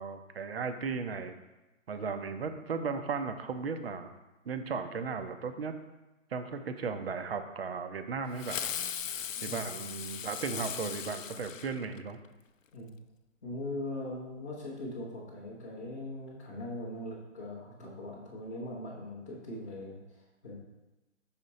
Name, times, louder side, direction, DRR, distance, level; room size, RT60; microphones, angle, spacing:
voice 1, 0.0-1.4 1.9-4.1 4.5-5.8 6.3-8.6 9.4-12.2, right 5 dB, 50° right, 8 dB, 0.6 m, -36 dB
Fireworks, 8.4-12.3, left 8 dB, 70° left, 0.5 m, -38 dB
voice 2, 13.4-20.6, left 1 dB, 15° left, -10 dB, 0.6 m, -40 dB
5.7 x 4.3 x 3.9 m, 1.1 s
figure-of-eight pair, 140°, 40 cm